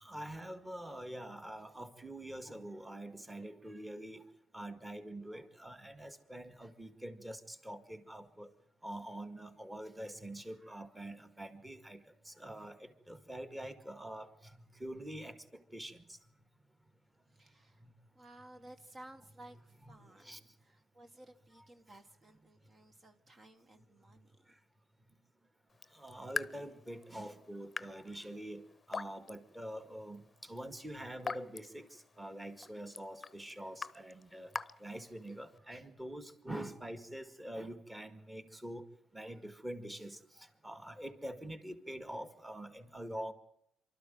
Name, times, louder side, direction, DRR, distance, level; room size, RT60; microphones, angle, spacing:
voice 1, 0.0-4.2 4.5-8.5 8.8-12.0 12.3-14.3 14.8-15.4 15.7-16.0 20.2-20.4 25.9-28.6 28.9-31.9 32.2-34.5 34.8-38.8 39.1-43.3, right 1 dB, 10° right, 11 dB, 1.9 m, -45 dB
voice 2, 17.3-17.8 18.1-24.5, right 1 dB, 40° right, 7 dB, 1.6 m, -57 dB
Raindrop / Drip, 25.7-35.6, left 4 dB, 30° left, 0.8 m, -46 dB
24.5 x 13.0 x 9.2 m, 0.78 s
cardioid pair, 90°, 0 cm